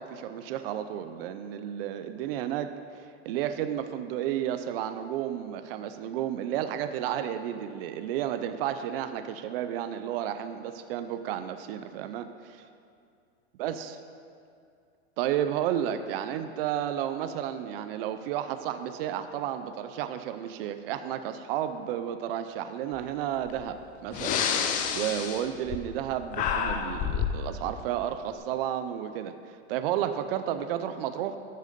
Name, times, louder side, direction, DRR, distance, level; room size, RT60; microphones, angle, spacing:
voice 1, 0.0-2.7 3.2-12.6 13.6-14.0 15.2-29.3 29.7-31.4, right 10 dB, 55° right, 9 dB, 0.6 m, -32 dB
Breathing, 23.5-23.6 24.1-26.1 26.3-27.4, left 7 dB, 25° left, 0.6 m, -29 dB
13.5 x 6.7 x 5.2 m, 2.4 s
supercardioid pair, 150°, 34 cm